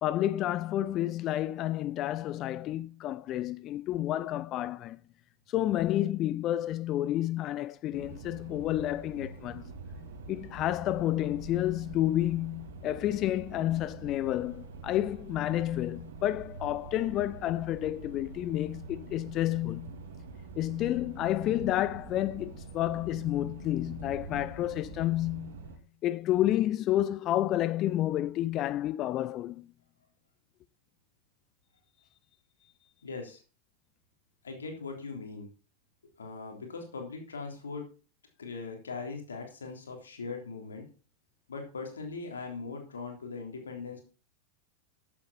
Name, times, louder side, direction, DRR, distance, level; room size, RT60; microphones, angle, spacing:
voice 1, 0.0-5.0 5.5-9.6 10.3-19.9 20.6-25.5 26.0-29.6, left 13 dB, 35° left, 0.4 m, -30 dB
sound 1, 7.9-25.8, right 4 dB, 65° right, 2.9 m, -45 dB
voice 2, 33.0-33.4 34.4-35.5 36.2-37.9 38.4-40.9 41.5-44.0, left 4 dB, 75° left, 3.5 m, -40 dB
13.5 x 8.7 x 4.2 m
figure-of-eight pair, 90°, 0 cm